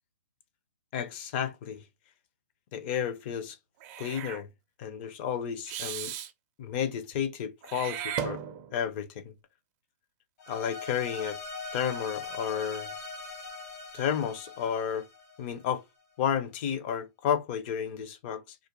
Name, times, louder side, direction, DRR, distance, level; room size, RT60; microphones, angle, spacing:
voice 1, 0.9-1.8 2.7-3.6 4.0-4.5 4.8-6.1 6.6-8.4 8.7-9.3 10.5-11.4 11.7-12.9 13.9-15.0 15.4-15.8 16.2-18.6, left 8 dB, 35° left, 0.5 m, -32 dB
Meow / Hiss, 3.8-4.4 5.7-6.3 7.6-8.9, right 9 dB, 30° right, 0.4 m, -36 dB
sound 1, 10.4-15.7, left 4 dB, 65° left, 1.2 m, -41 dB
2.4 x 2.1 x 2.9 m
hypercardioid pair, 145°, 9 cm